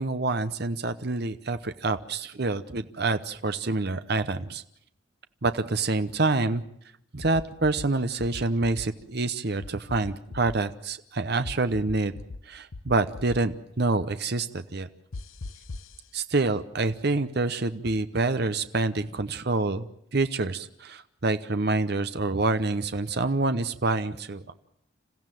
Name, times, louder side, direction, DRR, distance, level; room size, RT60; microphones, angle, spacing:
voice 1, 0.0-4.6 5.4-6.6 7.1-12.1 12.5-14.9 16.1-19.9 20.1-24.5, right 3 dB, 50° right, 10 dB, 0.9 m, -27 dB
sound 1, 7.2-7.9 8.2-8.9 9.6-10.6 11.4-12.4 12.7-13.4 15.1-15.9, left 3 dB, 80° left, 0.9 m, -38 dB
27.5 x 15.0 x 9.1 m, 0.73 s
head